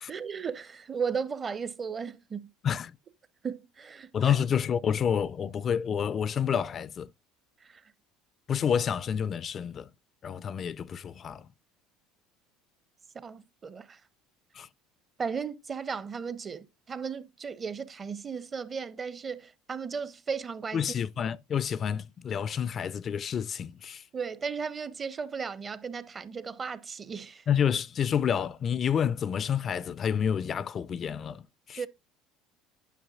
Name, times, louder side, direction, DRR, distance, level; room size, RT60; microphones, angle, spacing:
voice 1, 0.1-2.4 3.4-4.3 7.6-7.8 13.1-14.0 15.2-20.8 24.1-27.4 31.8-31.9, right 6 dB, 30° right, 0.7 m, -35 dB
voice 2, 4.1-7.1 8.5-9.9 10.2-11.5 14.5-14.7 20.7-24.0 27.5-31.8, left 8 dB, 40° left, 0.3 m, -29 dB
9.2 x 6.0 x 2.4 m
hypercardioid pair, 70°, 0 cm